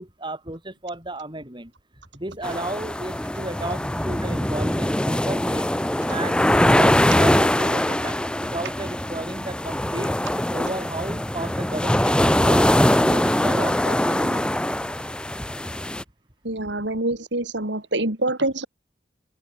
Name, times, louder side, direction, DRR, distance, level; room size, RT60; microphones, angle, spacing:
voice 1, 0.0-1.7 2.1-5.7 6.1-10.1 10.5-14.5, right 1 dB, 25° right, 5.5 m, -33 dB
sound 1, 2.4-16.0, left 1 dB, 5° left, 0.7 m, -22 dB
voice 2, 16.4-18.7, right 2 dB, 75° right, 4.1 m, -25 dB
open air
head